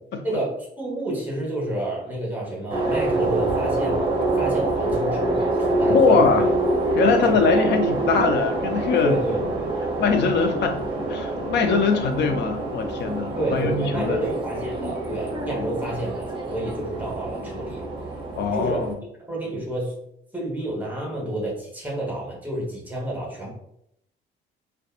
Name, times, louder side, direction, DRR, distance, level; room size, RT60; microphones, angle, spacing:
voice 1, 0.2-4.1 4.4-6.4 7.2-7.4 9.0-9.7 13.4-17.8 18.5-18.9 19.3-20.0 20.3-23.5, right 1 dB, 10° right, -4 dB, 1.0 m, -29 dB
sound 1, 2.7-18.9, right 2 dB, 25° right, 0.7 m, -26 dB
voice 2, 5.9-6.5 6.9-9.1 10.0-10.8 11.1-14.2 15.5-15.7 18.4-18.9, left 5 dB, 60° left, 6 dB, 0.4 m, -22 dB
2.7 x 2.2 x 2.3 m, 0.73 s
cardioid pair, 90°, 20 cm